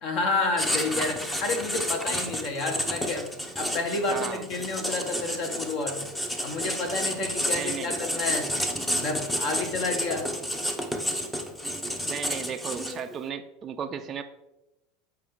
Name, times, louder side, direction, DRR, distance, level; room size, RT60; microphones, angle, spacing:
voice 1, 0.0-3.3 3.6-6.0 6.4-8.5 9.0-10.3, left 3 dB, 55° left, 4 dB, 1.4 m, -30 dB
Writing, 0.6-13.2, equal, 10° left, 0.7 m, -31 dB
voice 2, 4.1-4.4 7.5-8.0 12.0-14.2, right 8 dB, 35° right, 6 dB, 0.4 m, -35 dB
7.4 x 4.6 x 3.7 m, 0.94 s
supercardioid pair, 125°, 0 cm